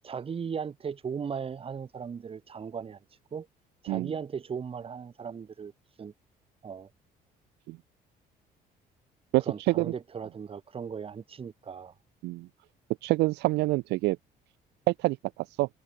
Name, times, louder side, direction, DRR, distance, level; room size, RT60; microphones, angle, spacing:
voice 1, 0.0-3.0 3.3-3.5 3.8-5.7 6.0-6.1 6.6-6.9 9.4-11.9, right 6 dB, 35° right, 2.0 m, -37 dB
voice 2, 13.0-14.2 14.9-15.2 15.6-15.7, right 20 dB, 85° right, 1.4 m, -26 dB
cardioid pair, 110°, 17 cm